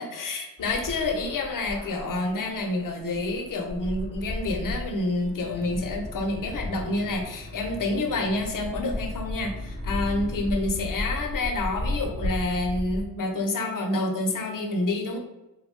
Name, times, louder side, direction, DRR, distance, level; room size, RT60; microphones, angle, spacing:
voice 1, 0.0-15.2, left 2 dB, 60° left, 3 dB, 0.7 m, -28 dB
sound 1, 0.6-13.1, left 1 dB, 40° right, 1.0 m, -35 dB
sound 2, 5.4-10.6, left 2 dB, 15° left, 0.3 m, -41 dB
3.8 x 2.1 x 3.1 m, 1.0 s
wide cardioid pair, 135°, 37 cm